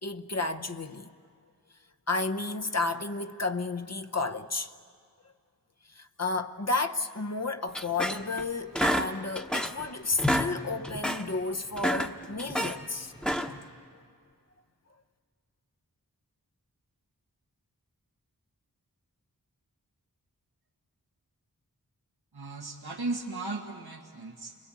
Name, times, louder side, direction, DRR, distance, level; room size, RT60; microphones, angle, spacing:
voice 1, 0.0-1.1 2.1-4.7 5.9-13.2 13.9-14.0, left 3 dB, 45° left, 0.9 m, -32 dB
sound 1, 7.7-8.4 8.8-9.9 10.1-10.5 10.8-11.2 11.7-12.8 13.2-13.7, equal, ahead, 1.1 m, -29 dB
voice 2, 22.3-24.6, right 3 dB, 90° right, 1.5 m, -36 dB
29.5 x 21.5 x 8.4 m
wide cardioid pair, 50°, 37 cm